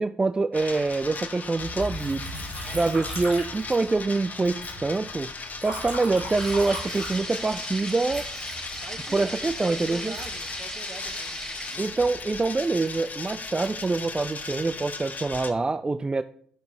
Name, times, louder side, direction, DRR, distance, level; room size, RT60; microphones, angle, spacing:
voice 1, 0.0-2.3 2.7-5.3 5.6-8.3 9.1-10.1 11.8-16.2, right 3 dB, 20° right, 0.3 m, -25 dB
sound 1, 0.5-15.5, left 4 dB, 35° left, 1.0 m, -38 dB
Liquid, 1.6-4.2 4.4-7.6 8.1-11.1 11.7-12.2, equal, 85° right, 3.4 m, -37 dB
sound 2, 6.3-11.8, equal, 10° left, 3.9 m, -37 dB
voice 2, 8.8-12.0, right 4 dB, 40° right, 1.1 m, -43 dB
12.5 x 5.8 x 3.5 m
figure-of-eight pair, 45°, 4 cm